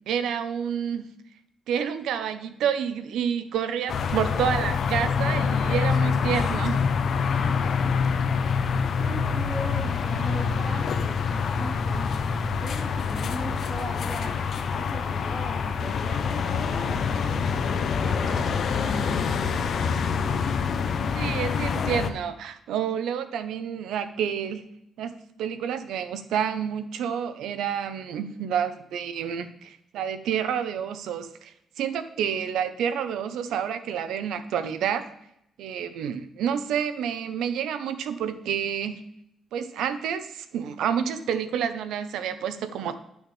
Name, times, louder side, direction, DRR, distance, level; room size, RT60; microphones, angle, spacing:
voice 1, 0.1-1.1 1.7-6.8 21.1-24.6 25.0-31.5 31.8-35.0 35.6-39.0 39.5-43.0, right 8 dB, 85° right, 11 dB, 0.6 m, -29 dB
sound 1, 3.9-22.1, left 6 dB, 55° left, 0.6 m, -26 dB
voice 2, 9.0-12.2 12.5-14.4 14.7-19.4, right 1 dB, 20° right, 1 dB, 1.0 m, -39 dB
10.0 x 6.2 x 3.2 m, 0.78 s
cardioid pair, 125°, 0 cm